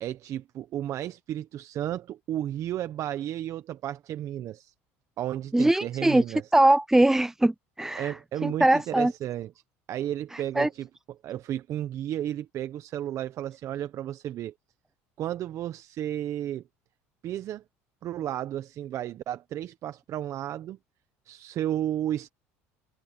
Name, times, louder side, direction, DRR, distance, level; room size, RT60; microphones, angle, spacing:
voice 1, 0.0-4.7 5.2-6.5 8.0-9.5 9.9-14.5 15.2-16.6 17.2-17.6 18.0-20.8 21.2-22.3, right 12 dB, 55° right, 1.2 m, -33 dB
voice 2, 5.5-6.2 6.5-8.1 8.4-9.1 10.3-10.7, right 1 dB, 5° right, 0.6 m, -22 dB
supercardioid pair, 85°, 6 cm